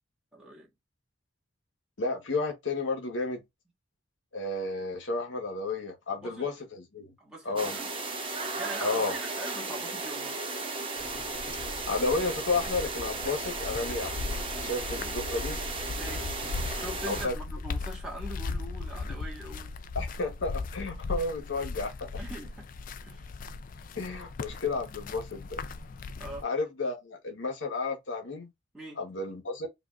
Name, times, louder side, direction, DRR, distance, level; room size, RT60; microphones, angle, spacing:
voice 1, 0.3-0.7 6.1-6.5 7.2-7.9 8.6-10.4 14.6-14.7 15.9-16.4 16.8-19.7 22.2-22.7 23.0-23.2 26.2-26.4 28.7-29.0, right 1 dB, 5° right, 1.5 m, -42 dB
voice 2, 2.0-3.4 4.3-7.1 7.4-7.7 8.8-9.1 11.9-14.2 14.6-15.6 17.1-17.3 19.9-22.1 23.9-25.6 26.4-28.5 29.0-29.7, left 3 dB, 75° left, 1.0 m, -32 dB
sound 1, 7.6-17.3, right 3 dB, 25° right, 0.8 m, -35 dB
sound 2, 11.0-26.4, left 3 dB, 45° left, 0.3 m, -38 dB
4.8 x 2.5 x 2.3 m
head